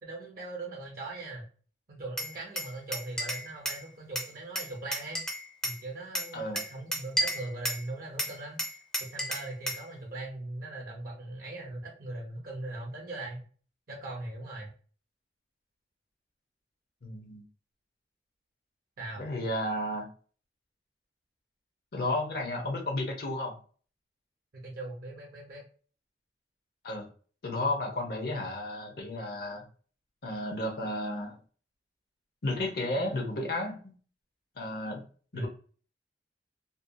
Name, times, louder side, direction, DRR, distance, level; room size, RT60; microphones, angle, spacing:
voice 1, 0.0-1.4 1.9-5.2 5.6-8.6 9.0-13.4 13.9-14.7 19.0-19.3 24.6-25.6 35.3-35.5, right 2 dB, 55° right, -2 dB, 0.6 m, -40 dB
Glass, 2.2-3.8 4.2-5.8 6.2-7.9 8.2-9.9, equal, 5° left, 0.4 m, -33 dB
voice 2, 17.0-17.4 19.2-20.1 21.9-23.5 26.8-27.1 27.4-29.6 30.2-31.3 32.4-33.8 34.6-35.0 35.3-35.5, left 1 dB, 55° left, 1 dB, 0.6 m, -32 dB
2.6 x 2.1 x 2.6 m, 0.41 s
head